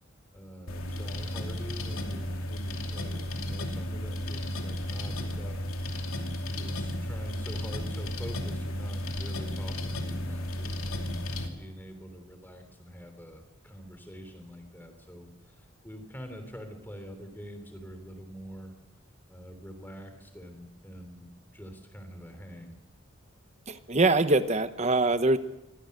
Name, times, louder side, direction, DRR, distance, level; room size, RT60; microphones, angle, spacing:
voice 1, 0.3-5.6 6.5-18.7 19.3-22.8, equal, 10° left, 6 dB, 3.3 m, -45 dB
sound 1, 0.7-11.5, left 1 dB, 85° left, 2.8 m, -34 dB
voice 2, 23.7-25.4, right 2 dB, 35° right, 11 dB, 1.0 m, -23 dB
24.5 x 18.0 x 6.7 m, 0.93 s
head